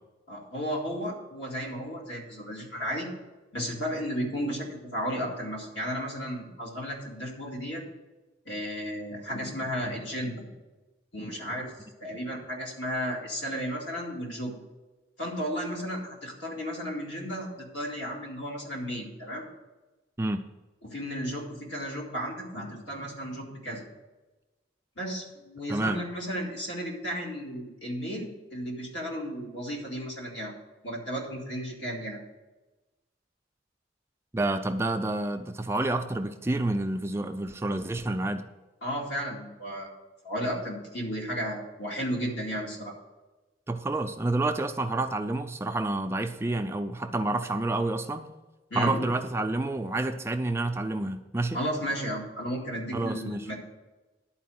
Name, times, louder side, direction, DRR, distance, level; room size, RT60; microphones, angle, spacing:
voice 1, 0.3-3.1 3.5-7.8 8.5-10.5 11.1-11.7 12.0-14.5 15.2-19.5 20.8-23.9 25.0-30.5 30.8-32.2 38.8-40.0 40.2-42.9 48.7-49.1 51.5-53.6, equal, 75° left, -2 dB, 2.3 m, -34 dB
voice 2, 25.7-26.0 34.3-38.4 43.7-48.3 48.7-51.6 52.9-53.5, right 2 dB, 15° right, 7 dB, 0.3 m, -29 dB
11.0 x 4.5 x 7.7 m, 1.1 s
head